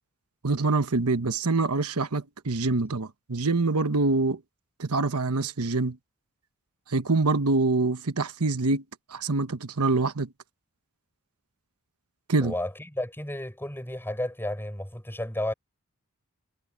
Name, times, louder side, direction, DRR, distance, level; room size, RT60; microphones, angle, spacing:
voice 1, 0.4-4.4 4.8-6.0 6.9-8.8 9.1-10.3 12.3-12.5, right 3 dB, 90° right, 1.2 m, -25 dB
voice 2, 12.4-15.5, left 1 dB, 10° left, 7.5 m, -32 dB
head